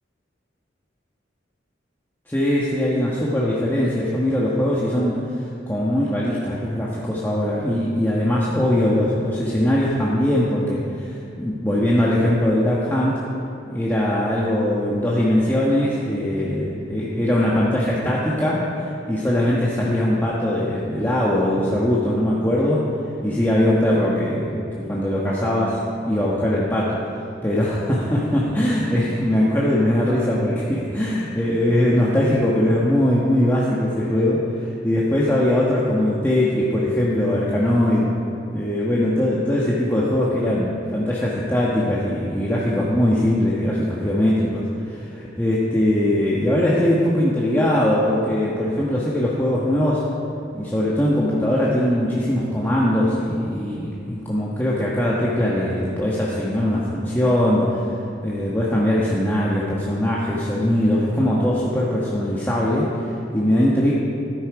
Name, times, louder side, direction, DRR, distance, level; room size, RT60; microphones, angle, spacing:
voice 1, 2.3-5.2 5.6-13.2 13.7-22.9 23.2-24.6 24.9-25.8 26.1-27.0 27.4-38.1 38.5-50.1 50.5-57.9 58.2-63.9, left 1 dB, 10° left, -6 dB, 1.4 m, -21 dB
14.5 x 13.0 x 4.8 m, 2.7 s
head